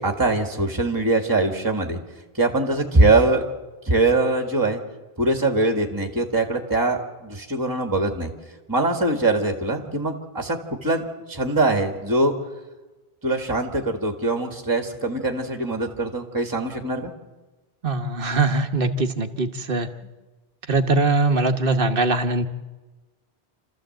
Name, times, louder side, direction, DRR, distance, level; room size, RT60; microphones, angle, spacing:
voice 1, 0.0-2.0 2.3-3.4 3.9-4.8 5.2-8.3 8.7-11.0 11.3-12.3 13.2-17.1, right 2 dB, 20° right, 4 dB, 1.8 m, -22 dB
voice 2, 17.8-19.9 20.7-22.4, right 3 dB, 60° right, 8 dB, 1.3 m, -21 dB
28.0 x 14.0 x 7.8 m, 1.2 s
omnidirectional pair, 1.0 m